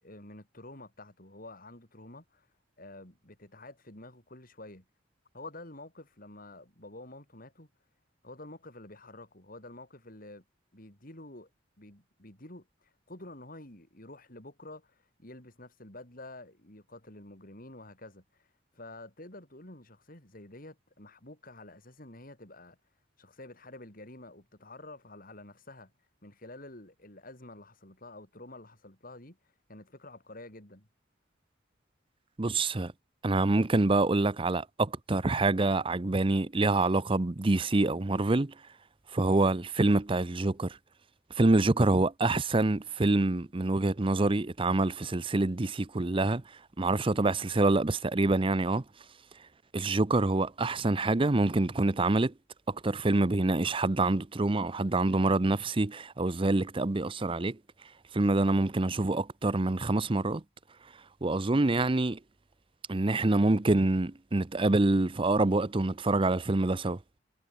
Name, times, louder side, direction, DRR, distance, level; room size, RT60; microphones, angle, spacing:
voice 1, 0.0-2.5 2.8-4.9 5.3-7.7 8.2-10.4 10.7-11.5 11.8-18.5 18.7-22.8 23.2-25.9 26.2-29.4 29.7-30.9, left 2 dB, 45° left, 5.3 m, -49 dB
voice 2, 32.4-32.9 33.2-38.5 39.1-40.8 41.4-46.4 46.8-48.8 49.7-52.3 52.7-57.6 58.1-60.4 61.2-62.2 62.9-67.0, right 2 dB, 25° right, 0.7 m, -26 dB
head